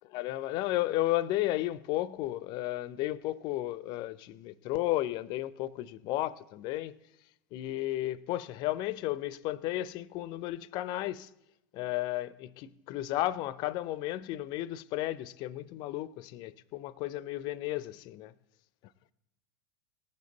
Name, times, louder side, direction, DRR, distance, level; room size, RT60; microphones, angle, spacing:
voice 1, 0.1-7.0 7.5-11.3 11.7-18.3, left 15 dB, 45° left, 0.5 m, -33 dB
18.5 x 7.5 x 3.9 m
hypercardioid pair, 90°, 10 cm